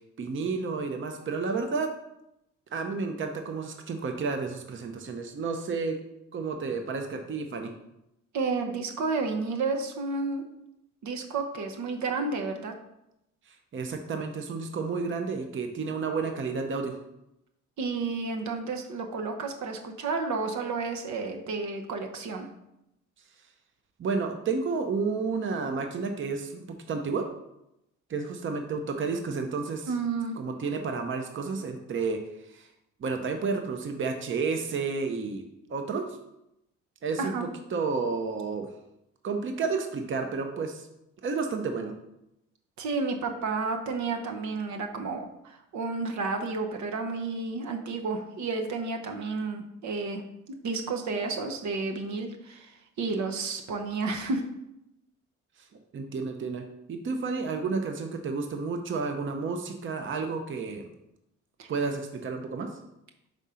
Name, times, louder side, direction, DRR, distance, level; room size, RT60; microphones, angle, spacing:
voice 1, 0.2-1.9 2.7-6.0 6.3-7.7 13.5-17.0 24.0-27.3 28.1-29.9 30.4-32.2 32.5-32.7 33.0-35.4 35.7-36.1 37.0-38.7 39.2-40.9 41.2-41.9 55.9-60.8 61.7-62.7, right 4 dB, 40° right, 5 dB, 0.8 m, -31 dB
voice 2, 8.3-10.4 11.0-12.7 17.8-22.5 29.9-30.4 37.2-37.5 42.8-50.2 50.6-52.7 53.0-54.4 61.6-61.7, right 4 dB, 70° right, 4 dB, 0.9 m, -31 dB
5.3 x 3.7 x 5.6 m, 0.86 s
cardioid pair, 90°, 30 cm